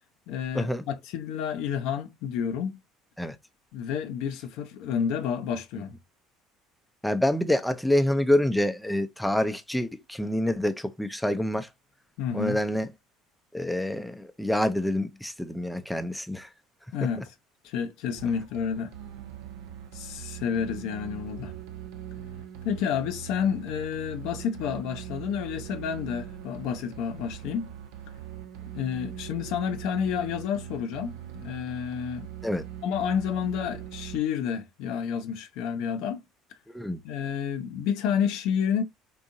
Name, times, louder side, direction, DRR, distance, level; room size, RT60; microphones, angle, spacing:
voice 1, 0.3-2.8 3.7-5.9 12.2-12.6 16.9-17.3 17.6-18.9 19.9-21.5 22.6-27.7 28.7-32.3 32.8-36.2 37.0-38.8, left 8 dB, 65° left, 0.6 m, -30 dB
voice 2, 7.0-11.7 12.3-12.9 13.5-16.5 32.4-32.6 36.7-37.0, left 1 dB, 5° left, 0.6 m, -27 dB
sound 1, 18.2-34.2, right 10 dB, 70° right, 0.7 m, -41 dB
3.8 x 2.7 x 2.6 m
hypercardioid pair, 65°, 0 cm